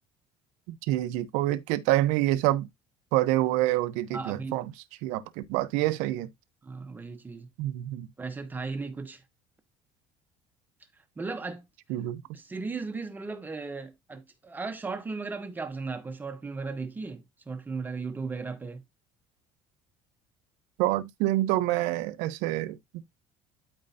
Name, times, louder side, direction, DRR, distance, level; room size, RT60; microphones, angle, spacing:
voice 1, 0.7-2.7 3.1-4.7 5.0-6.3 7.6-8.1 11.9-12.2 20.8-23.0, right 15 dB, 90° right, 1.0 m, -27 dB
voice 2, 4.1-4.6 6.6-7.5 8.2-9.2 11.2-11.7 12.3-18.8, right 4 dB, 15° right, 0.9 m, -36 dB
12.5 x 4.5 x 2.7 m
cardioid pair, 155°, 12 cm